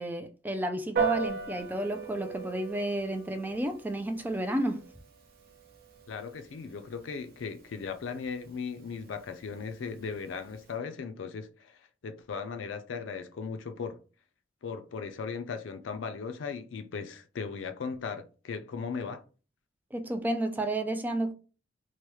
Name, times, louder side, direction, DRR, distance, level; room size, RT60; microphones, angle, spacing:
voice 1, 0.0-4.8 19.9-21.3, right 1 dB, 10° right, 0.3 m, -31 dB
Piano, 1.0-10.7, right 5 dB, 55° right, 0.6 m, -39 dB
voice 2, 6.1-14.0 14.6-19.2, left 5 dB, 75° left, 0.4 m, -37 dB
3.0 x 2.2 x 3.1 m
head